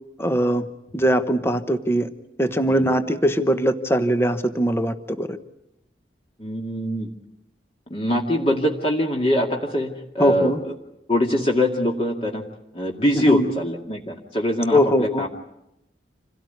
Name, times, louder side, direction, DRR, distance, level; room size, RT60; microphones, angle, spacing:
voice 1, 0.2-0.7 0.9-2.1 2.4-5.4 10.2-10.6 13.1-13.5 14.7-15.3, equal, 15° left, 9 dB, 1.1 m, -21 dB
voice 2, 6.4-7.1 7.9-9.9 10.1-10.7 11.1-12.4 12.7-15.3, equal, 30° left, 0 dB, 2.3 m, -23 dB
27.5 x 17.5 x 9.4 m, 0.87 s
head